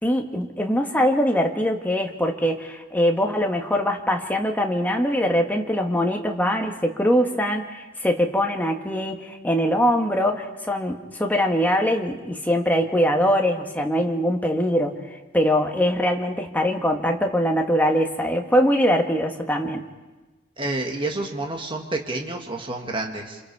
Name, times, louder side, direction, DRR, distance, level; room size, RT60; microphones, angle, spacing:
voice 1, 0.0-15.0 15.3-19.8, equal, 10° left, 3 dB, 1.5 m, -22 dB
voice 2, 20.6-23.4, right 2 dB, 25° right, 2 dB, 1.8 m, -29 dB
28.0 x 26.0 x 4.7 m, 1.2 s
head